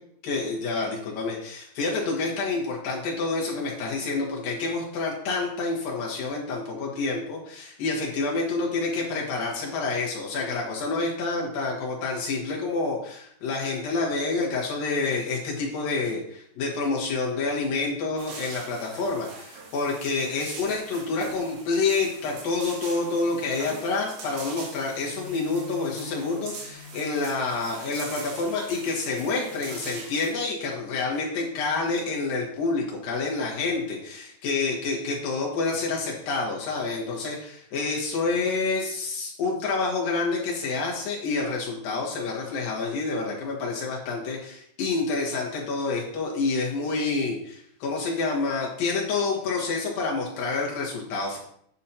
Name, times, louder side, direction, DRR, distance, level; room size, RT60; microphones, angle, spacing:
voice 1, 0.2-51.4, left 3 dB, 60° left, -3 dB, 2.6 m, -28 dB
sound 1, 18.2-30.3, right 2 dB, 85° right, 4.4 m, -42 dB
8.4 x 8.3 x 2.9 m, 0.67 s
omnidirectional pair, 5.6 m